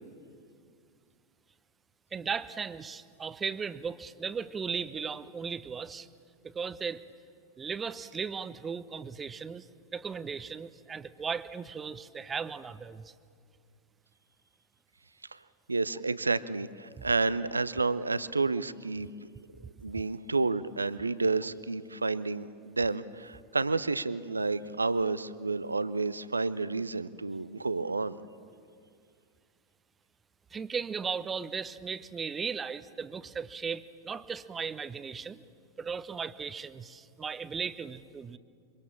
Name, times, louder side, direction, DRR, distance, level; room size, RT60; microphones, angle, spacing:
voice 1, 2.1-6.1 6.4-7.0 7.6-9.7 9.9-13.1 30.5-35.4 35.8-38.4, right 6 dB, 20° right, 15 dB, 0.8 m, -36 dB
voice 2, 15.7-19.1 19.8-28.2, right 3 dB, 80° right, 17 dB, 0.6 m, -30 dB
27.0 x 24.0 x 7.2 m, 2.3 s
figure-of-eight pair, 90°, 0 cm